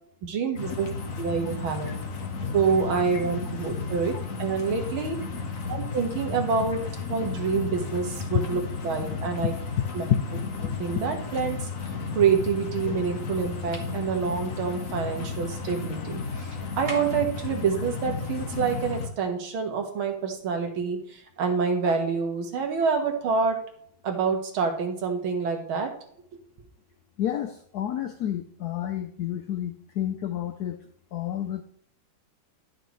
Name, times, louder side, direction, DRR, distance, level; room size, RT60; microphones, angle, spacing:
voice 1, 0.2-0.9 1.2-1.9 2.5-4.1 4.4-5.2 5.7-6.8 7.1-9.5 9.9-10.0 10.6-11.6 12.1-16.2 16.8-21.0 21.4-23.6 24.0-25.9, right 5 dB, 75° right, 4 dB, 2.2 m, -27 dB
sound 1, 0.6-19.1, left 4 dB, 45° left, 1.2 m, -33 dB
sound 2, 13.7-14.0 16.8-17.3, right 2 dB, 25° right, 1.6 m, -39 dB
voice 2, 27.2-30.8 31.1-31.6, left 11 dB, 80° left, 7 dB, 0.9 m, -30 dB
11.5 x 6.6 x 3.1 m, 0.65 s
omnidirectional pair, 2.3 m